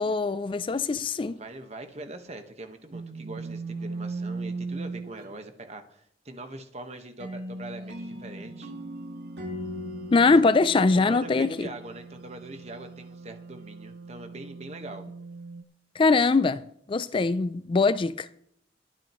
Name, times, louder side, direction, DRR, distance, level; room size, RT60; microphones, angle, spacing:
voice 1, 0.0-1.4 10.1-11.7 16.0-16.6 16.9-18.3, left 3 dB, 30° left, 0.3 m, -22 dB
voice 2, 1.3-8.7 10.3-10.4 10.7-15.0, right 2 dB, 40° right, 1.3 m, -42 dB
sound 1, 2.9-5.4 7.7-15.6, right 4 dB, 55° right, 0.6 m, -40 dB
sound 2, 7.2-12.1, left 1 dB, 70° right, 2.1 m, -40 dB
22.5 x 8.9 x 3.1 m
head